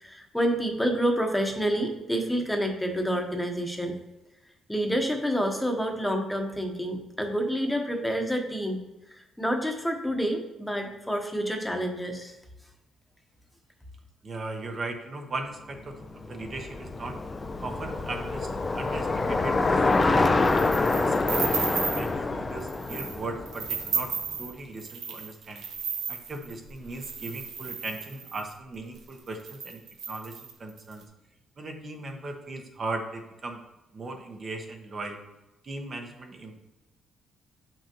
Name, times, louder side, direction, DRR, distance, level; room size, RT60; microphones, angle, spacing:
voice 1, 0.0-3.9 4.7-8.8 9.4-12.3, equal, 5° left, 3 dB, 1.1 m, -28 dB
voice 2, 14.2-17.2 17.6-20.7 20.9-24.1 24.4-25.6 26.1-31.0 31.6-33.6 33.9-35.2 35.6-36.6, right 2 dB, 40° right, 4 dB, 1.1 m, -38 dB
Bicycle, 15.9-24.2, left 3 dB, 25° left, 0.5 m, -26 dB
sound 1, 20.4-22.1 22.6-23.2 23.5-28.5 29.1-29.2 29.4-30.9, right 6 dB, 80° right, 0.9 m, -34 dB
7.0 x 5.8 x 3.0 m, 1.0 s
cardioid pair, 90°, 0 cm